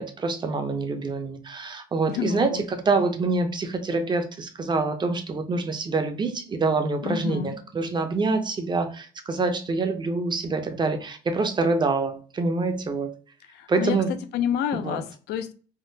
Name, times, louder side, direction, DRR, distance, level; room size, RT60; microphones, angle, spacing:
voice 1, 0.0-13.1 13.7-14.1 14.8-15.0, right 3 dB, 25° right, 0.5 m, -26 dB
voice 2, 2.1-2.6 7.0-7.6 13.4-15.5, left 9 dB, 80° left, 0.4 m, -29 dB
3.5 x 2.0 x 2.7 m
cardioid pair, 110°, 17 cm